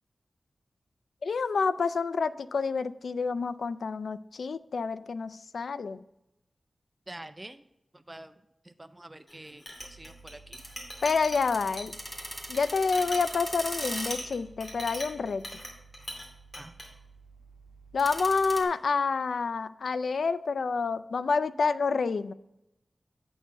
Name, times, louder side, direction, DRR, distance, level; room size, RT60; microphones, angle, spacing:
voice 1, 1.2-6.0 11.0-11.9 12.5-15.4 17.9-22.3, left 4 dB, 85° left, 15 dB, 0.3 m, -28 dB
voice 2, 7.1-7.7 7.9-8.4 8.6-10.6 16.6-16.7, right 1 dB, 20° right, 10 dB, 0.4 m, -46 dB
Chink clink, 9.3-16.3 16.5-16.9, left 1 dB, 40° left, 2.5 m, -41 dB
sound 1, 9.8-18.6, right 1 dB, ahead, 1.6 m, -42 dB
8.3 x 4.6 x 6.8 m, 0.87 s
wide cardioid pair, 60°, 0 cm